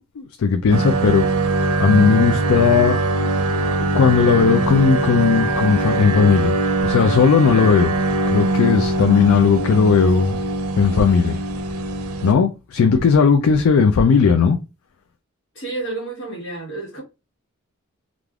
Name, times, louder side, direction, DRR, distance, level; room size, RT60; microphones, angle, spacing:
voice 1, 0.2-1.3 1.8-3.0 3.8-6.6 6.8-7.9 8.3-10.4 10.8-11.4 12.2-14.6, left 6 dB, 75° left, 0.4 m, -16 dB
sound 1, 0.7-12.3, right 2 dB, 85° right, 0.5 m, -21 dB
voice 2, 12.8-13.1 15.5-17.0, right 2 dB, 55° left, 1.4 m, -31 dB
3.3 x 2.5 x 2.3 m
head